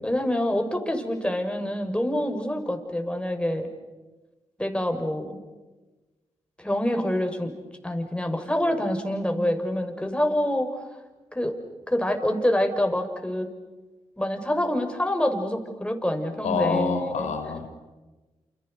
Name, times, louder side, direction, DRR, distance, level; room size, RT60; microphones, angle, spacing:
voice 1, 0.0-3.7 4.6-5.4 6.6-7.5 7.8-10.7 11.3-11.6 11.9-13.5 14.2-17.3, left 1 dB, 10° left, 5 dB, 6.7 m, -26 dB
voice 2, 16.4-17.7, left 5 dB, 90° left, 6 dB, 4.8 m, -27 dB
30.0 x 29.0 x 6.8 m, 1.2 s
cardioid pair, 55°, 12 cm